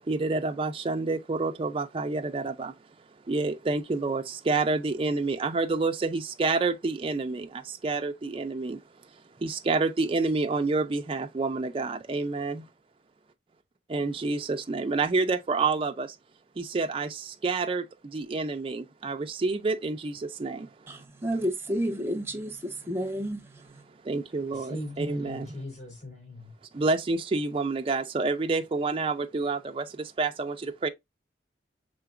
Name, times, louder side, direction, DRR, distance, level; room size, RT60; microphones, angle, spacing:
voice 1, 0.1-2.8 3.3-8.8 9.4-12.6 13.9-16.2 16.6-20.7 24.0-25.5 26.7-30.9, right 3 dB, 30° right, 0.4 m, -28 dB
voice 2, 20.9-23.5, equal, 15° right, 0.8 m, -31 dB
voice 3, 24.3-26.5, left 1 dB, 45° left, 3.6 m, -40 dB
5.8 x 3.8 x 2.4 m
head